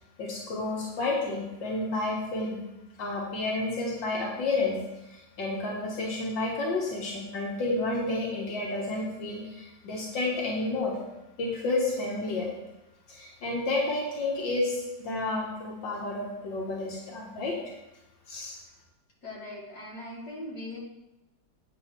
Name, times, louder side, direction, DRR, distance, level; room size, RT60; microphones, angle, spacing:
voice 1, 0.2-2.6 3.0-4.8 5.1-10.9 11.4-12.5 13.1-17.6 18.3-18.5, left 2 dB, 85° left, -3 dB, 2.1 m, -30 dB
voice 2, 19.2-20.8, left 1 dB, 60° left, -4 dB, 2.7 m, -40 dB
8.3 x 4.7 x 6.6 m, 0.97 s
omnidirectional pair, 1.9 m